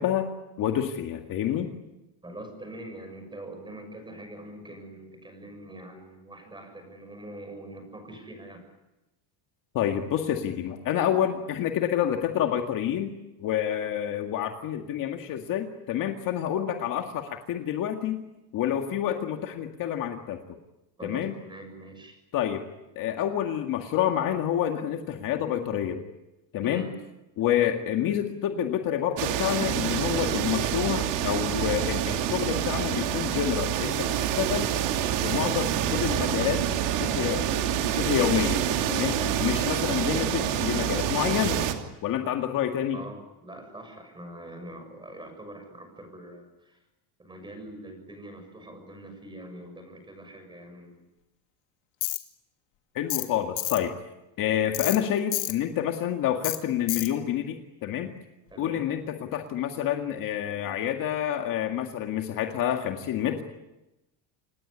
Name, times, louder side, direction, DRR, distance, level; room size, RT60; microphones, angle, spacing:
voice 1, 0.0-1.7 9.7-13.1 13.4-18.2 18.5-20.4 21.0-21.4 22.3-22.7 23.0-26.0 26.5-26.9 27.4-34.7 35.2-36.6 36.9-37.6 37.9-39.1 39.4-41.6 42.0-43.0 53.0-53.9 54.4-58.1 58.6-63.4, left 10 dB, 45° left, 4 dB, 2.0 m, -28 dB
voice 2, 2.2-8.6 21.0-22.2 26.6-26.9 39.1-39.4 42.9-46.8 47.2-51.0 58.5-58.8, right 1 dB, 10° right, 6 dB, 6.7 m, -43 dB
sound 1, 29.2-41.7, right 9 dB, 65° right, 3.0 m, -27 dB
Tools, 52.0-52.2 53.1-53.3 53.6-53.8 54.7-55.0 55.3-55.5 56.4-56.6 56.9-57.1, left 20 dB, 80° left, 2.7 m, -29 dB
27.5 x 20.0 x 9.9 m, 1.0 s
cardioid pair, 165°, 46 cm